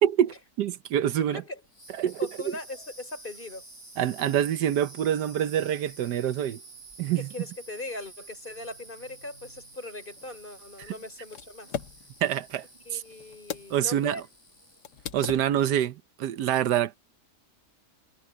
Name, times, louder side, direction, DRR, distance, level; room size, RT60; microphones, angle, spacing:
voice 1, 0.0-1.4 2.0-2.2 4.0-6.6 7.0-7.3 12.2-12.6 12.9-13.0 13.7-14.2 15.1-17.0, right 10 dB, 85° right, 1.4 m, -26 dB
voice 2, 1.3-1.6 2.2-3.6 7.1-11.7 12.9-14.2 15.3-15.5, left 2 dB, 30° left, 4.0 m, -40 dB
sound 1, 1.6-15.2, right 3 dB, 45° right, 5.6 m, -50 dB
sound 2, 10.2-14.0 14.2-14.3 14.8-15.8, left 8 dB, 90° left, 1.7 m, -40 dB
omnidirectional pair, 1.7 m